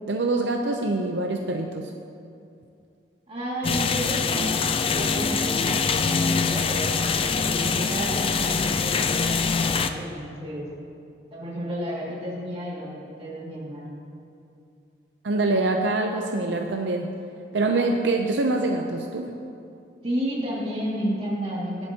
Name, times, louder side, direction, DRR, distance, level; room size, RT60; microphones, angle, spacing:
voice 1, 0.1-1.9 15.2-17.1 17.5-19.3, right 2 dB, 75° right, 3 dB, 0.6 m, -25 dB
voice 2, 3.3-4.5 4.9-7.1 7.5-10.7 11.3-14.0 20.0-21.9, equal, 30° right, -5 dB, 2.3 m, -32 dB
sound 1, 3.6-9.9, left 5 dB, 30° left, 0.4 m, -24 dB
19.5 x 7.9 x 2.9 m, 2.6 s
head